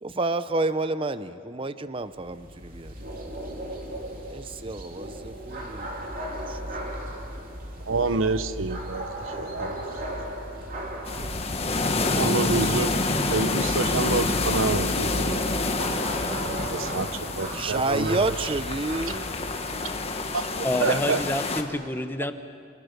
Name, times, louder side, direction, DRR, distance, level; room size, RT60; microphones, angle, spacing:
voice 1, 0.0-2.9 4.3-6.0 6.5-6.6 17.5-19.3, right 2 dB, 25° right, 12 dB, 0.7 m, -29 dB
sound 1, 2.0-20.1, right 1 dB, 45° right, 3.2 m, -36 dB
voice 2, 7.9-9.1 9.4-10.0 12.1-13.0 13.3-15.4 16.7-18.4 20.3-21.2, right 3 dB, 90° right, 13 dB, 0.9 m, -27 dB
sound 2, 11.1-21.6, left 3 dB, 30° left, 1.5 m, -28 dB
voice 3, 20.6-22.3, left 1 dB, 10° left, 9 dB, 0.9 m, -28 dB
27.5 x 26.5 x 6.7 m, 2.3 s
head